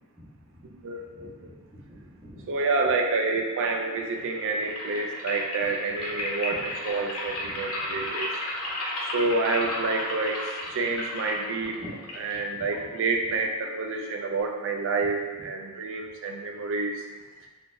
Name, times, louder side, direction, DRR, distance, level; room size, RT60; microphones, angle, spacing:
voice 1, 0.1-2.5 6.2-6.3 7.2-8.1 10.4-10.5 11.7-11.9 12.3-12.9 13.2-13.3 15.3-15.4, equal, 20° right, -9 dB, 0.9 m, -49 dB
voice 2, 0.8-1.3 2.5-8.3 9.1-11.8 12.2-17.0, right 3 dB, 60° right, 2 dB, 0.4 m, -28 dB
sound 1, 4.0-13.1, left 1 dB, 85° left, 0.7 m, -34 dB
3.8 x 2.4 x 2.5 m, 1.3 s
head